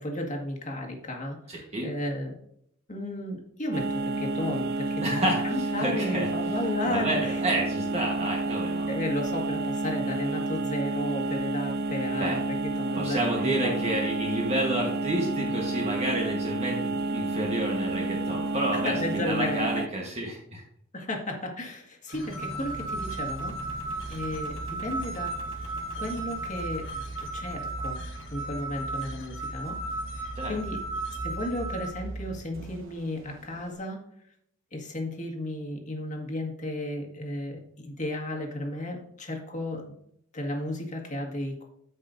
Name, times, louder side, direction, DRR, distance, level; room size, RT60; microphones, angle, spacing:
voice 1, 0.0-2.4 2.9-5.1 5.4-7.4 8.9-13.8 18.7-19.9 20.9-23.8 24.1-25.3 26.0-28.0 28.3-29.8 30.1-30.8 31.2-34.0 34.7-40.0 40.3-41.6, left 1 dB, 35° left, 0 dB, 1.8 m, -34 dB
voice 2, 1.5-1.9 5.0-6.3 6.9-8.9 12.2-12.4 12.9-20.6 30.3-30.5, right 1 dB, 30° right, -2 dB, 1.3 m, -30 dB
sound 1, 3.7-19.9, right 2 dB, 50° right, 0.4 m, -30 dB
sound 2, 22.1-31.9, right 2 dB, 60° left, 1.3 m, -36 dB
Engine, 22.1-33.8, right 2 dB, 65° right, 1.1 m, -40 dB
14.0 x 5.4 x 2.7 m, 0.71 s
head